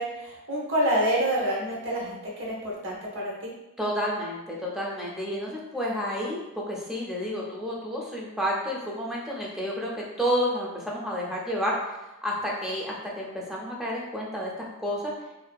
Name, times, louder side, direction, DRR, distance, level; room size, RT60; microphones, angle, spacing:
voice 1, 0.0-3.5, right 1 dB, 60° right, -5 dB, 0.8 m, -27 dB
voice 2, 3.8-11.7 12.2-15.1, equal, ahead, -4 dB, 0.4 m, -30 dB
2.6 x 2.3 x 2.2 m, 0.99 s
head